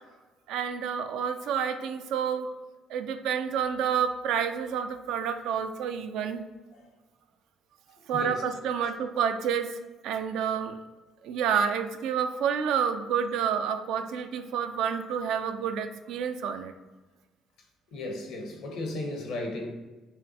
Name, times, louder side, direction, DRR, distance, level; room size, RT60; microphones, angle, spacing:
voice 1, 0.5-2.5 2.9-6.4 8.1-9.7 10.0-10.8 11.2-16.7, right 7 dB, 75° right, 8 dB, 0.3 m, -29 dB
voice 2, 8.1-8.4 8.8-8.9 17.9-19.7, left 2 dB, 75° left, 2 dB, 0.9 m, -35 dB
5.4 x 2.3 x 2.8 m, 1.2 s
hypercardioid pair, 60°, 0 cm